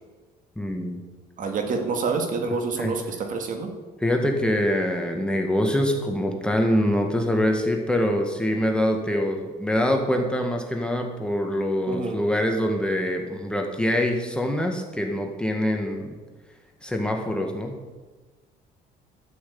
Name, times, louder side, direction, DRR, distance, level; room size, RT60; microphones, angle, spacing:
voice 1, 0.6-1.0 2.8-2.9 4.0-16.2 16.8-17.8, left 1 dB, 5° left, 2 dB, 1.9 m, -24 dB
voice 2, 1.4-3.7 11.9-12.2, right 4 dB, 50° right, 4 dB, 2.0 m, -27 dB
13.0 x 6.4 x 8.6 m, 1.3 s
cardioid pair, 110°, 17 cm